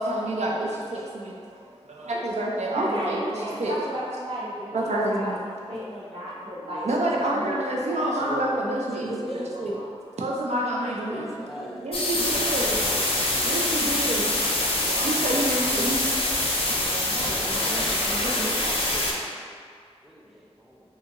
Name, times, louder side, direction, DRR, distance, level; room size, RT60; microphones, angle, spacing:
voice 1, 0.0-4.0 4.7-5.4 6.8-11.3 11.6-16.0, right 1 dB, 85° right, -3 dB, 0.4 m, -28 dB
voice 2, 2.7-8.3 16.5-18.5, equal, 50° right, -8 dB, 0.9 m, -34 dB
voice 3, 7.1-7.6 8.2-8.4 8.9-9.8 11.1-12.3 12.9-13.5 13.9-14.0 14.6-15.0 17.7-17.9 18.9-19.2 20.0-20.8, equal, ahead, -4 dB, 0.5 m, -40 dB
sound 1, 11.9-19.1, left 1 dB, 55° left, 0.5 m, -25 dB
2.6 x 2.4 x 2.8 m, 2.1 s
wide cardioid pair, 55°, 11 cm